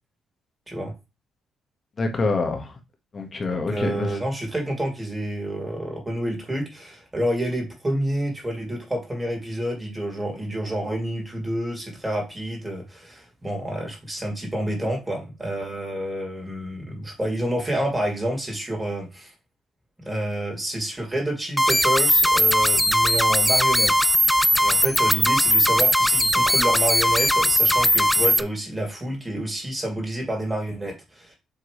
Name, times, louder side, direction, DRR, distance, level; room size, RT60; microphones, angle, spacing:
voice 1, 2.0-2.7 3.1-4.2, left 3 dB, 35° left, 1.6 m, -26 dB
voice 2, 3.5-19.3 20.0-24.1 24.6-31.4, right 1 dB, 15° right, 2.9 m, -29 dB
sound 1, 21.6-28.4, equal, ahead, 0.3 m, -19 dB
7.6 x 3.7 x 3.3 m
cardioid pair, 90°, 0 cm